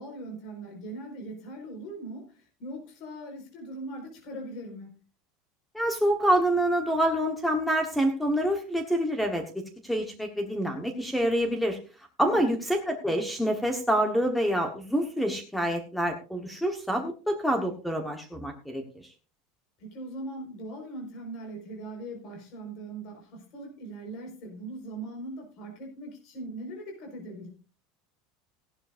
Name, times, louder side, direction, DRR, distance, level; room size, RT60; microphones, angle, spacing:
voice 1, 0.0-5.0 12.3-12.5 19.8-27.5, right 1 dB, 45° left, 1 dB, 4.7 m, -40 dB
voice 2, 5.7-9.4 9.8-11.8 12.2-18.8, equal, ahead, 5 dB, 1.2 m, -26 dB
16.5 x 12.0 x 2.6 m, 0.34 s
cardioid pair, 170°, 0 cm